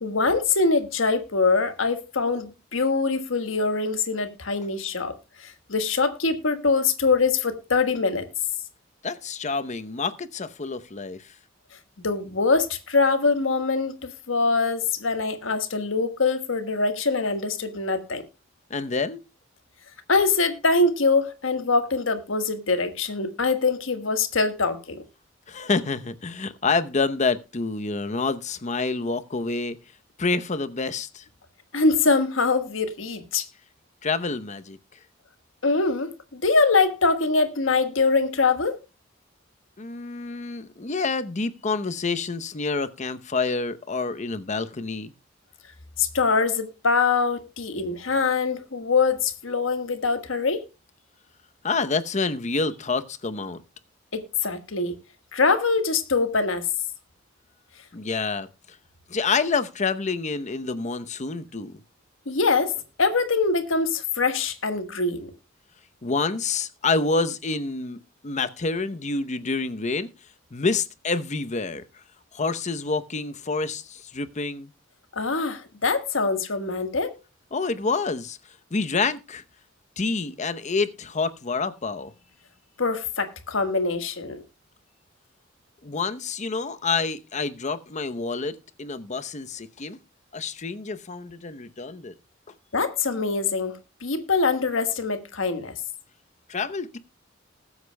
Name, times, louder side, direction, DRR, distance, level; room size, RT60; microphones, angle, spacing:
voice 1, 0.0-8.3 12.0-18.2 20.1-25.0 31.7-33.5 35.6-38.8 46.0-50.7 54.1-55.0 55.3-56.7 62.3-65.3 75.1-77.2 82.8-84.4 92.7-95.7, left 4 dB, 90° left, 1.4 m, -23 dB
voice 2, 9.0-11.3 18.7-19.2 25.5-29.8 30.2-31.2 34.0-34.8 39.8-45.1 51.6-53.6 57.9-58.8 59.1-61.8 66.0-70.1 70.5-72.0 72.3-74.7 77.5-78.4 78.7-79.4 80.0-82.1 85.8-90.0 90.3-92.1 96.5-97.0, left 4 dB, 40° left, 0.8 m, -28 dB
20.0 x 8.1 x 2.2 m
head